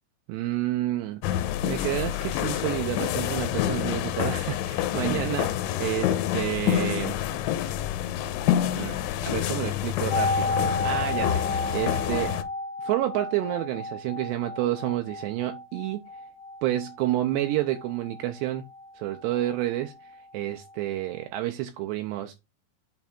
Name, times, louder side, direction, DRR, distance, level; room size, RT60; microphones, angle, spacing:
voice 1, 0.3-7.2 8.7-12.4 12.8-16.0 16.6-18.6 19.0-19.9 20.3-22.3, right 14 dB, 85° right, 2.5 m, -29 dB
sound 1, 1.2-12.4, left 12 dB, 85° left, 3.1 m, -27 dB
sound 2, 10.1-19.8 20.1-20.2, left 2 dB, 70° left, 1.8 m, -32 dB
8.3 x 3.4 x 4.3 m
omnidirectional pair, 5.5 m